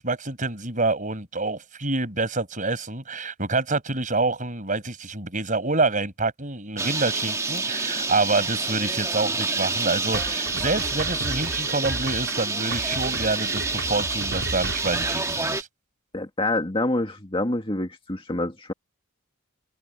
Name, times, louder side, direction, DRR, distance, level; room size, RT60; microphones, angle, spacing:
voice 1, 0.0-15.7, right 3 dB, 35° right, 5.7 m, -27 dB
Bird, 6.8-15.6, right 3 dB, 15° right, 1.8 m, -28 dB
sound 1, 10.1-15.3, right 2 dB, 65° right, 5.0 m, -34 dB
voice 2, 16.1-18.7, left 2 dB, 25° left, 2.0 m, -27 dB
head